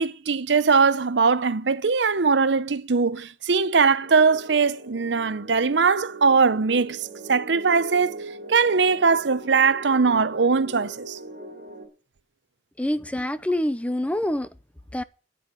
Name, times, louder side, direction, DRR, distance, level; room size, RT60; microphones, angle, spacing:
voice 1, 0.0-8.2 8.5-11.2, right 5 dB, 70° right, 0.7 m, -21 dB
sound 1, 4.0-11.9, right 2 dB, 55° right, 3.6 m, -40 dB
voice 2, 12.8-14.5 14.9-15.0, left 1 dB, 5° left, 0.6 m, -26 dB
10.0 x 7.2 x 8.9 m
head